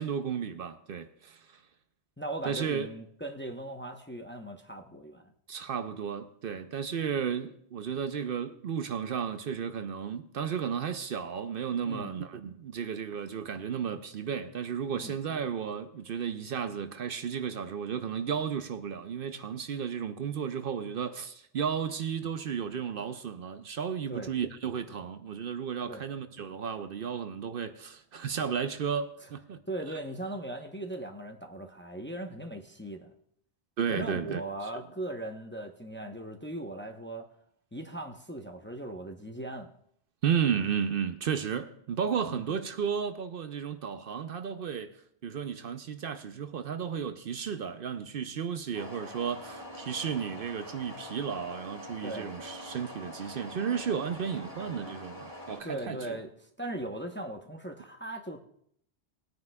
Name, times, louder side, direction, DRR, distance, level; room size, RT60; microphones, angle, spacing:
voice 1, 0.0-1.4 2.5-2.9 5.5-29.6 33.8-34.4 40.2-44.9 45.2-56.2, right 7 dB, 65° right, 0.8 m, -33 dB
voice 2, 2.2-5.3 11.8-12.1 15.0-15.1 24.1-24.3 25.9-26.0 29.7-33.1 33.9-37.3 37.7-39.7 42.2-42.6 52.0-52.3 55.6-58.4, right 1 dB, 10° left, 0.7 m, -39 dB
sound 1, 48.7-55.6, left 1 dB, 15° right, 2.8 m, -44 dB
20.0 x 9.4 x 2.2 m
omnidirectional pair, 1.1 m